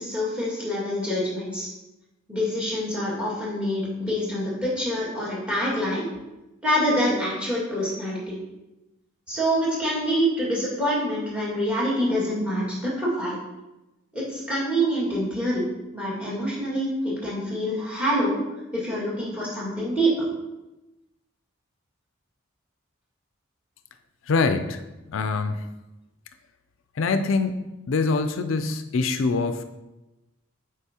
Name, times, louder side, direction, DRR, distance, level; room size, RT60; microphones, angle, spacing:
voice 1, 0.0-1.7 2.3-6.1 6.6-8.4 9.3-13.4 14.1-15.6 15.9-18.4 18.7-20.3, equal, 5° right, -6 dB, 2.0 m, -26 dB
voice 2, 24.3-24.8 25.1-25.7 27.0-27.6 27.9-29.6, left 4 dB, 85° left, 9 dB, 0.4 m, -24 dB
8.1 x 4.8 x 2.9 m, 1.0 s
head